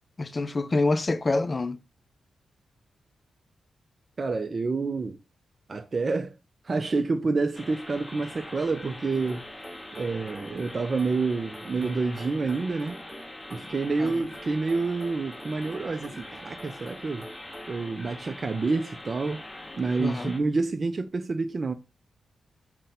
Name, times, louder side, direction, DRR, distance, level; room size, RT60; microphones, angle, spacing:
voice 1, 0.2-1.8 14.0-14.1 20.0-20.3, left 2 dB, 40° left, 0.4 m, -26 dB
voice 2, 4.2-5.2 5.7-6.4 6.6-9.5 9.9-13.0 13.5-17.3 17.7-19.4 19.7-21.7, right 3 dB, 50° right, 0.4 m, -28 dB
sound 1, 7.5-20.4, left 1 dB, 25° left, 0.9 m, -43 dB
sound 2, 9.1-17.8, equal, 10° right, 1.1 m, -48 dB
4.1 x 2.1 x 3.9 m
supercardioid pair, 45°, 0 cm